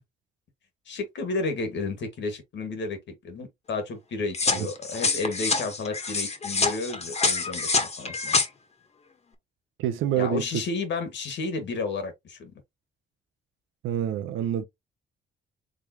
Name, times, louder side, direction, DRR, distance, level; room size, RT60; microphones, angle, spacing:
voice 1, 0.9-3.0 3.2-8.4 10.2-12.5, left 3 dB, 65° left, 2.0 m, -32 dB
sound 1, 4.3-8.5, left 4 dB, 35° left, 1.4 m, -26 dB
voice 2, 9.8-10.6 13.8-14.7, right 10 dB, 90° right, 0.8 m, -27 dB
5.0 x 3.6 x 3.0 m
cardioid pair, 90°, 20 cm